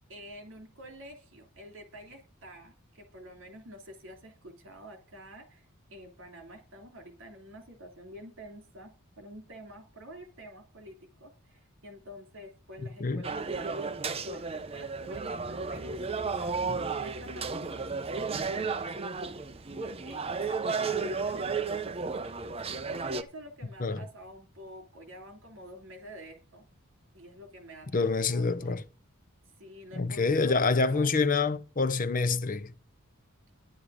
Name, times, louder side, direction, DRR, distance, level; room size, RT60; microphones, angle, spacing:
voice 1, 0.0-17.9 18.1-18.8 19.1-19.7 20.0-22.0 22.7-26.6 27.1-28.7 29.6-31.1, equal, 60° right, 3.1 m, -49 dB
sound 1, 13.2-23.2, right 4 dB, 25° right, 0.6 m, -33 dB
voice 2, 27.9-28.8 30.0-32.7, left 4 dB, 40° left, 0.7 m, -27 dB
10.0 x 10.0 x 5.0 m
head